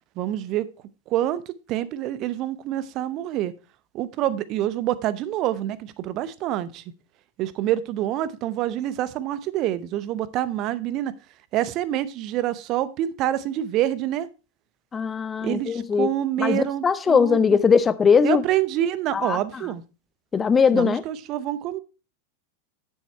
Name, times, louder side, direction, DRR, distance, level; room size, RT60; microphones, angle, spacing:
voice 1, 0.2-0.7 1.1-3.5 3.9-6.8 7.4-11.1 11.5-14.3 15.4-17.6 18.2-19.8 20.7-21.8, right 12 dB, 40° right, 0.8 m, -26 dB
voice 2, 14.9-16.1 16.4-18.4 19.1-19.4 20.3-21.0, left 6 dB, 20° left, 0.5 m, -20 dB
9.9 x 7.3 x 4.4 m
figure-of-eight pair, 90°, 0 cm